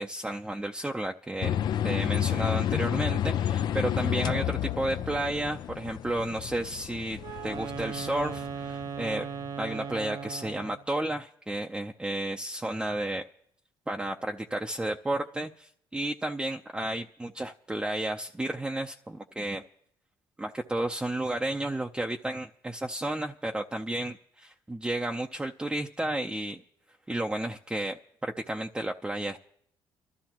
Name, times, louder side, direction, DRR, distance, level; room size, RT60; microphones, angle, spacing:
voice 1, 0.0-1.6 1.8-9.3 9.6-13.3 13.9-19.6 20.4-26.6 27.1-29.4, right 1 dB, 10° right, 2 dB, 0.6 m, -32 dB
sound 1, 1.4-9.5, left 10 dB, 60° left, 0.5 m, -30 dB
Wind instrument woodwind instrument, 7.2-10.9, right 7 dB, 50° right, 0.8 m, -37 dB
25.0 x 13.0 x 3.0 m, 0.69 s
cardioid pair, 95°, 8 cm